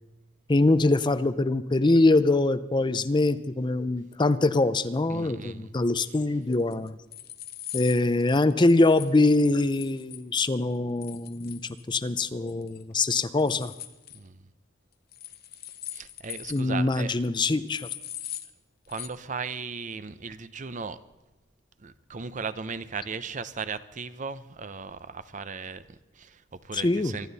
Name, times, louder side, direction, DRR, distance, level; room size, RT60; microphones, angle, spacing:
voice 1, 0.5-7.0 7.7-13.7 16.5-17.9 26.7-27.2, left 2 dB, 25° left, 13 dB, 0.5 m, -23 dB
voice 2, 5.1-5.7 14.1-14.4 15.9-17.1 18.9-21.0 21.8-27.3, right 5 dB, 40° right, 14 dB, 0.7 m, -37 dB
sound 1, 6.5-10.2 11.0-12.2 12.5-12.8 13.1-14.2 15.1-16.7 16.9-17.0 17.2-17.3 17.7-18.5 18.9-19.1, left 12 dB, 55° left, 1.0 m, -41 dB
24.5 x 12.0 x 4.1 m, 1.1 s
head